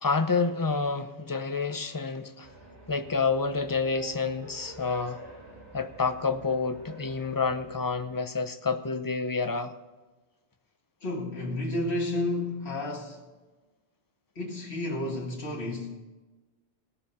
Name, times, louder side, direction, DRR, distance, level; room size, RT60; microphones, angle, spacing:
voice 1, 0.0-2.5 2.9-5.2 5.7-9.7, left 4 dB, 20° left, 0.6 m, -28 dB
sound 1, 2.4-8.1, right 1 dB, 85° right, 3.7 m, -49 dB
voice 2, 11.0-13.2 14.4-16.0, left 2 dB, 65° left, 2.2 m, -31 dB
18.0 x 6.9 x 5.5 m
omnidirectional pair, 1.2 m